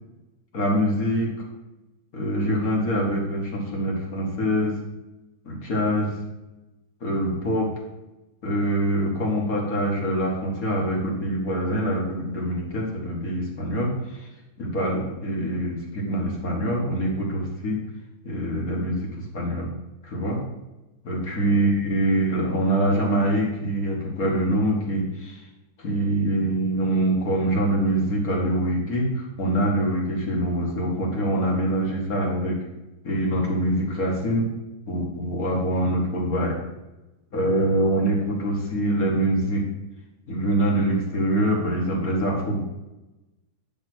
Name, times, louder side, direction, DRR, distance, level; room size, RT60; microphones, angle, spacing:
voice 1, 0.5-1.3 2.1-4.7 5.5-6.1 7.0-7.7 8.4-14.2 14.6-17.8 18.2-19.7 20.0-20.4 21.0-25.4 25.8-32.6 33.0-34.5 34.9-36.6 37.3-39.6 40.3-42.6, right 1 dB, 50° left, -2 dB, 2.3 m, -24 dB
10.5 x 3.6 x 6.2 m, 1.0 s
omnidirectional pair, 2.1 m